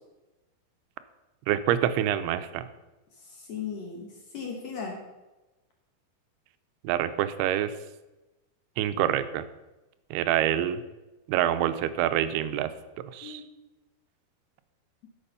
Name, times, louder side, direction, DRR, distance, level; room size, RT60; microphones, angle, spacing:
voice 1, 1.5-2.7 6.8-7.8 8.8-9.4 10.1-10.8 11.3-12.7 13.0-13.4, right 11 dB, 90° right, 12 dB, 2.6 m, -26 dB
voice 2, 3.1-5.0 13.2-13.5, left 6 dB, 60° left, 0 dB, 1.9 m, -37 dB
12.0 x 6.1 x 5.5 m, 1.1 s
omnidirectional pair, 4.4 m